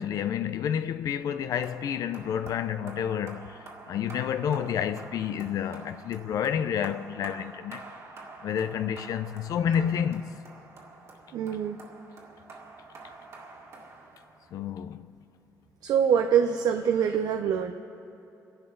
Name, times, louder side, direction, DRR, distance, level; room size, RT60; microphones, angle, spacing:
voice 1, 0.0-3.6 3.9-7.8 8.4-10.3 14.5-15.1, left 8 dB, 65° left, 0.5 m, -29 dB
sound 1, 1.6-14.6, right 3 dB, 45° right, 2.0 m, -47 dB
voice 2, 11.3-11.8 15.8-17.7, right 8 dB, 70° right, 0.7 m, -24 dB
30.0 x 11.5 x 3.9 m
cardioid pair, 170°, 7 cm